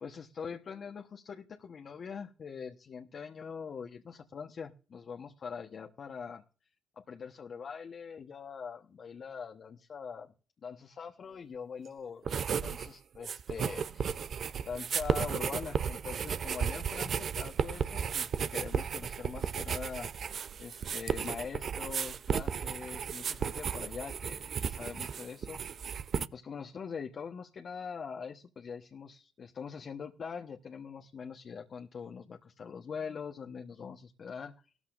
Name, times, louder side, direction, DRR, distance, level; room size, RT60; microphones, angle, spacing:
voice 1, 0.0-6.4 7.0-10.3 10.6-12.4 12.6-14.2 14.6-20.1 20.6-34.7, left 6 dB, 55° left, 3 dB, 1.2 m, -43 dB
sound 1, 12.2-12.9 13.1-26.3, right 7 dB, 55° right, 0.6 m, -34 dB
16.5 x 13.5 x 2.6 m, 0.37 s
supercardioid pair, 60°, 0 cm